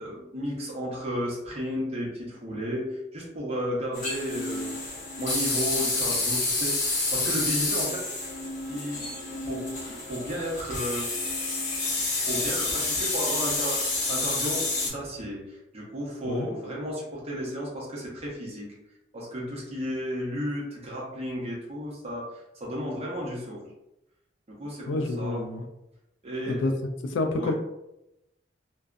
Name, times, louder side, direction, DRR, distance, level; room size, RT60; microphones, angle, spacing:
voice 1, 0.0-4.8 5.2-6.8 7.1-8.1 8.7-11.1 12.3-18.7 19.1-23.7 24.5-25.4 26.2-26.6 27.4-27.5, equal, 35° right, -4 dB, 0.8 m, -33 dB
sound 1, 3.9-14.9, left 2 dB, 45° left, 0.8 m, -29 dB
voice 2, 24.9-25.7 26.5-26.7 27.0-27.5, left 2 dB, 75° left, 5 dB, 0.4 m, -28 dB
2.5 x 2.2 x 2.4 m, 0.87 s
head